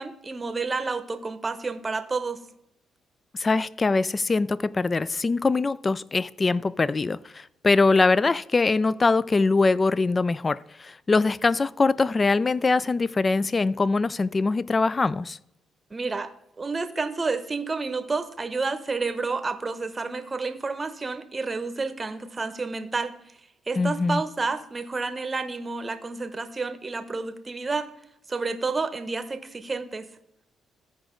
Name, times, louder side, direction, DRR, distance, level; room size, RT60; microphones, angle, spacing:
voice 1, 0.0-2.4 15.9-16.3 16.6-23.2 23.7-27.9 28.3-30.1, right 4 dB, 25° right, 0.8 m, -30 dB
voice 2, 3.3-15.4 23.8-24.2, left 3 dB, 30° left, 0.3 m, -23 dB
14.0 x 5.0 x 3.7 m
cardioid pair, 90°, 0 cm